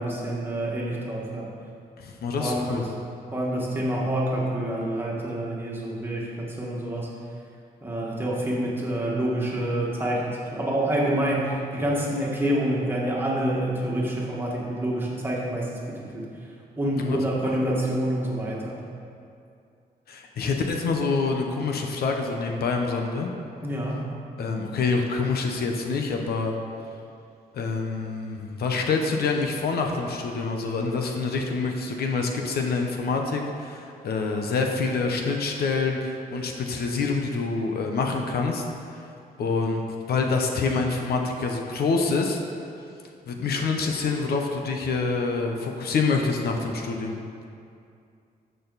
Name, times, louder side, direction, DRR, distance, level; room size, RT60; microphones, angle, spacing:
voice 1, 0.0-1.5 2.4-2.9 3.3-7.1 7.8-16.3 16.8-18.8 23.6-24.1, right 1 dB, 15° right, -4 dB, 1.9 m, -27 dB
voice 2, 2.0-2.8 16.9-17.2 17.4-17.6 20.1-23.3 24.4-26.5 27.5-39.0 39.4-39.8 40.1-42.4 43.3-47.1, left 4 dB, 75° left, 3 dB, 1.1 m, -26 dB
13.5 x 6.7 x 4.2 m, 2.4 s
cardioid pair, 145°, 16 cm